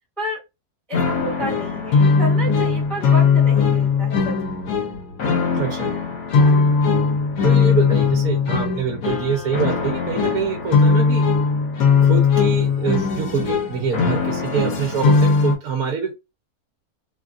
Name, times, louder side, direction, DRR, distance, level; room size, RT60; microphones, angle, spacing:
sound 1, 0.9-15.5, left 5 dB, 80° left, 1.3 m, -19 dB
voice 1, 0.9-4.5 6.3-6.6, right 1 dB, ahead, -6 dB, 1.1 m, -31 dB
voice 2, 5.5-5.9 7.4-11.2 12.0-16.1, right 6 dB, 80° right, 2 dB, 1.2 m, -25 dB
3.2 x 2.4 x 2.4 m, 0.24 s
omnidirectional pair, 1.5 m